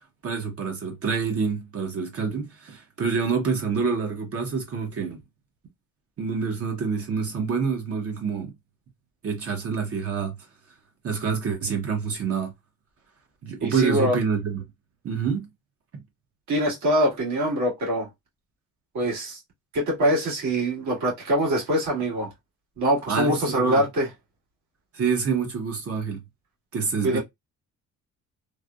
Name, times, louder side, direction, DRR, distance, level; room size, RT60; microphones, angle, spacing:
voice 1, 0.2-5.2 6.2-8.5 9.2-10.3 11.0-12.5 13.4-14.6 15.0-15.5 15.9-16.0 23.1-23.8 24.9-26.2 26.7-27.2, right 5 dB, 50° right, 1.0 m, -27 dB
voice 2, 13.6-14.2 16.5-18.1 18.9-19.4 19.7-22.3 22.8-24.1 27.0-27.2, equal, 70° right, 1.9 m, -23 dB
3.3 x 2.2 x 2.4 m
cardioid pair, 90°, 30 cm